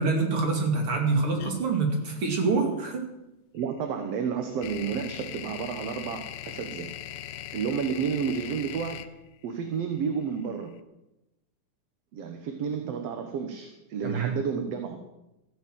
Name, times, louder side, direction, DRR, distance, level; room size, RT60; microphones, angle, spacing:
voice 1, 0.0-3.0 14.0-14.3, right 4 dB, 45° right, 3 dB, 3.2 m, -26 dB
sound 1, 1.4-1.5 3.6-10.6, left 11 dB, 85° left, 2.2 m, -40 dB
voice 2, 3.5-6.9 7.5-9.1 9.4-10.7 12.1-15.0, right 6 dB, 60° right, 6 dB, 2.0 m, -31 dB
14.5 x 9.2 x 7.8 m, 0.93 s
omnidirectional pair, 3.5 m